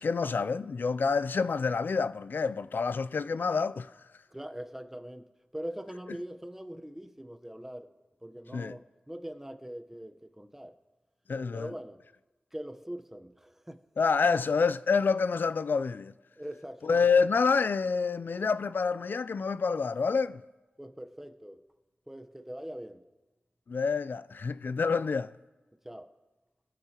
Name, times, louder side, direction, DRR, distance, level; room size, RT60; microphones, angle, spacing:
voice 1, 0.0-3.9 8.5-8.8 11.3-11.7 14.0-16.1 16.8-20.4 23.7-25.3, left 5 dB, 65° left, 0.3 m, -27 dB
voice 2, 4.3-7.9 8.2-10.8 11.5-12.0 12.5-13.8 16.4-17.3 20.8-21.6 22.1-23.1 25.8-26.1, equal, 10° right, 0.9 m, -42 dB
22.5 x 8.8 x 2.9 m
cardioid pair, 45°, 4 cm